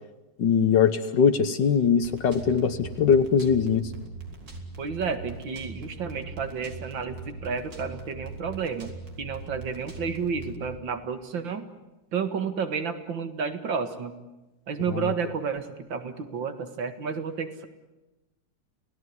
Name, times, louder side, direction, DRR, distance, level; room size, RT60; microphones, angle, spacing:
voice 1, 0.4-3.9 14.9-15.1, left 6 dB, 70° left, 8 dB, 1.8 m, -22 dB
sound 1, 2.0-10.7, right 3 dB, 70° right, 3.7 m, -41 dB
voice 2, 4.8-8.9 9.2-11.6 12.1-14.1 14.7-17.7, right 6 dB, 85° right, 9 dB, 2.6 m, -31 dB
29.5 x 18.0 x 9.7 m, 1.0 s
omnidirectional pair, 2.0 m